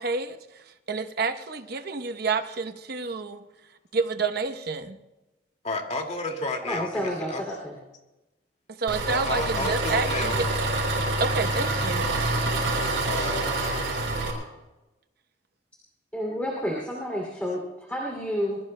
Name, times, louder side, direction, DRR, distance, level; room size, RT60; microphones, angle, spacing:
voice 1, 0.0-3.4 3.9-5.0 8.7-10.3 11.2-12.1, right 4 dB, 60° right, 8 dB, 0.9 m, -29 dB
voice 2, 5.6-7.4 9.1-10.4 13.1-13.6, left 2 dB, 40° left, 3 dB, 2.1 m, -31 dB
voice 3, 6.6-7.7 16.1-18.6, equal, 10° left, -2 dB, 2.6 m, -30 dB
Engine, 8.9-14.3, right 2 dB, 75° right, 5.1 m, -26 dB
24.0 x 22.0 x 2.2 m, 1.1 s
head